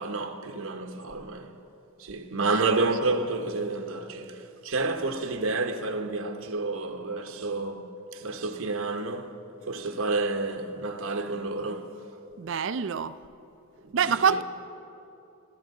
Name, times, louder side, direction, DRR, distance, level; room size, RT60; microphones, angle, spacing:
voice 1, 0.0-1.6 2.0-9.4 9.7-12.0 13.8-14.4, right 3 dB, 70° right, 1.1 m, -30 dB
voice 2, 12.4-13.2 13.9-14.4, right 6 dB, 55° right, 0.4 m, -25 dB
27.0 x 13.0 x 3.8 m
head